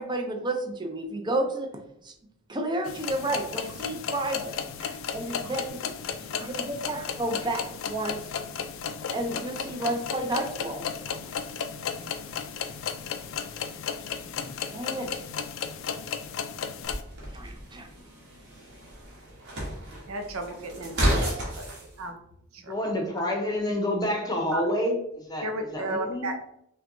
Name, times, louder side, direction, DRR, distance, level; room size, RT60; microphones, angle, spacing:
voice 1, 0.0-1.7 2.0-2.1 2.5-8.2 9.1-11.3 14.7-15.2 17.3-17.9, right 1 dB, 20° right, 4 dB, 0.5 m, -32 dB
sound 1, 2.8-17.0, left 7 dB, 65° left, 0.4 m, -34 dB
sound 2, 16.8-21.9, equal, 55° right, 1.2 m, -31 dB
voice 2, 20.1-21.3 21.6-21.7 22.0-22.1 22.6-22.7 24.5-24.6 25.4-26.4, right 2 dB, 75° right, 5 dB, 0.6 m, -33 dB
voice 3, 22.7-26.3, left 1 dB, 20° left, 1 dB, 0.7 m, -29 dB
5.5 x 2.2 x 2.6 m, 0.77 s
head